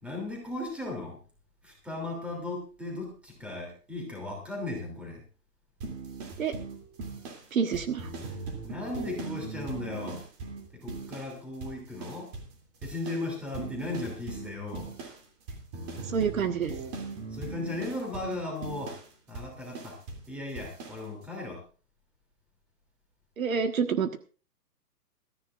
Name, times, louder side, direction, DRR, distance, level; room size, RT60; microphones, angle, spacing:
voice 1, 0.0-1.2 1.6-5.2 8.6-10.2 10.7-12.3 12.8-14.9 17.3-19.0 19.3-20.0 20.3-21.6, left 2 dB, 5° right, 0 dB, 3.0 m, -36 dB
sound 1, 5.8-11.4 11.6-12.6 12.8-20.3 20.6-21.0, right 3 dB, 25° right, 2.9 m, -40 dB
voice 2, 7.5-8.1 16.0-16.7 23.4-24.2, right 6 dB, 60° right, 7 dB, 1.6 m, -28 dB
21.5 x 14.0 x 2.5 m, 0.36 s
hypercardioid pair, 170°, 47 cm